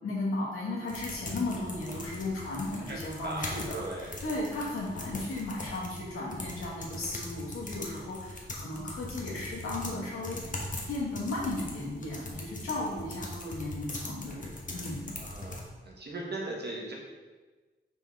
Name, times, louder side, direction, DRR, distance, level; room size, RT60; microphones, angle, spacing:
voice 1, 0.0-10.4 10.9-15.1, left 2 dB, 85° left, -5 dB, 1.8 m, -35 dB
sound 1, 0.9-15.6, left 2 dB, 40° left, 1.2 m, -41 dB
voice 2, 3.2-4.2 15.2-15.6 15.8-16.9, right 2 dB, 50° right, -2 dB, 1.6 m, -38 dB
5.8 x 4.6 x 3.5 m, 1.3 s
cardioid pair, 55°, 21 cm